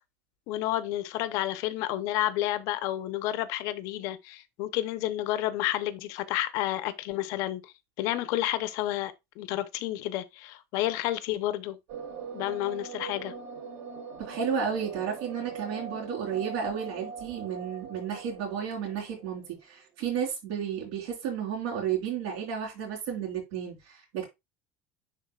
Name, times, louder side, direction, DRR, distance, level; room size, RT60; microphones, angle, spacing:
voice 1, 0.5-11.8 12.3-13.3, left 14 dB, 50° left, 0.7 m, -30 dB
sound 1, 11.9-19.5, right 5 dB, 45° right, 1.3 m, -41 dB
voice 2, 14.2-24.3, right 7 dB, 75° right, 3.8 m, -32 dB
10.5 x 3.9 x 2.3 m
cardioid pair, 170°, 7 cm